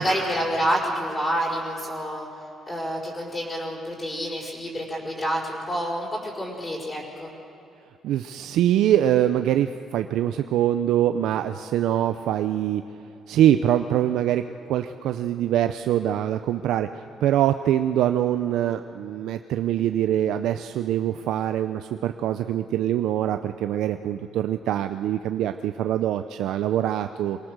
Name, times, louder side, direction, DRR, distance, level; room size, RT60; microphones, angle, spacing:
voice 1, 0.0-2.3 2.7-7.3, equal, 20° left, -4 dB, 5.0 m, -28 dB
voice 2, 8.0-12.8 13.3-27.4, right 11 dB, 80° right, 8 dB, 0.5 m, -24 dB
24.0 x 18.5 x 6.6 m, 2.9 s
cardioid pair, 100°, 0 cm